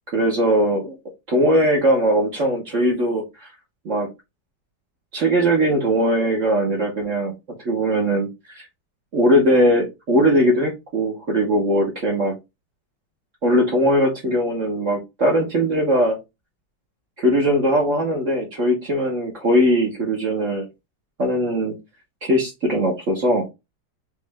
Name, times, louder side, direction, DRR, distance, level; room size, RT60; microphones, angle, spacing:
voice 1, 0.1-1.0 1.3-3.2 3.8-4.1 5.1-7.3 7.6-8.6 9.1-12.3 13.4-16.2 17.2-20.6 21.2-21.7 22.2-23.4, equal, 45° right, -1 dB, 1.5 m, -20 dB
5.3 x 2.6 x 3.4 m, 0.23 s
omnidirectional pair, 1.9 m